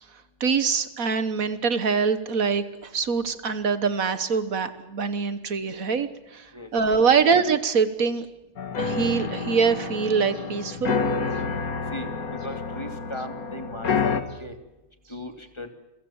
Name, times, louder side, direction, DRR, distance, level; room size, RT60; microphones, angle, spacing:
voice 1, 0.4-8.3 8.8-11.0, right 5 dB, 70° right, 12 dB, 1.6 m, -24 dB
voice 2, 6.5-7.0 11.9-14.0 14.4-14.5 15.1-15.7, left 1 dB, 20° left, 6 dB, 2.7 m, -38 dB
sound 1, 8.6-14.2, left 5 dB, 75° left, 2.2 m, -28 dB
30.0 x 23.5 x 7.2 m, 0.99 s
omnidirectional pair, 1.6 m